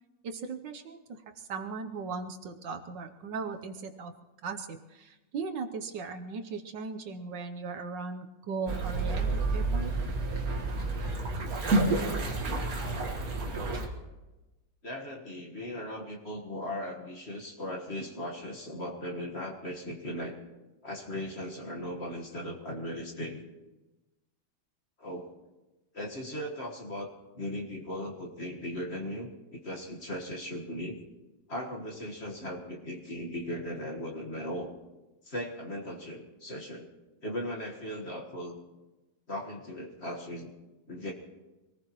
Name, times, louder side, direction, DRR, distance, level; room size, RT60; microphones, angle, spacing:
voice 1, 0.2-4.1 4.4-9.9, right 4 dB, 70° right, 6 dB, 1.5 m, -38 dB
sound 1, 8.7-13.9, right 2 dB, 50° right, 1.9 m, -29 dB
voice 2, 14.8-20.4 20.8-23.4 25.0-25.3 25.9-31.0 31.5-34.7 35.2-36.9 37.2-38.6 39.3-40.5 40.9-41.1, left 1 dB, 35° left, 0 dB, 1.7 m, -38 dB
25.0 x 19.0 x 3.1 m, 1.1 s
omnidirectional pair, 2.1 m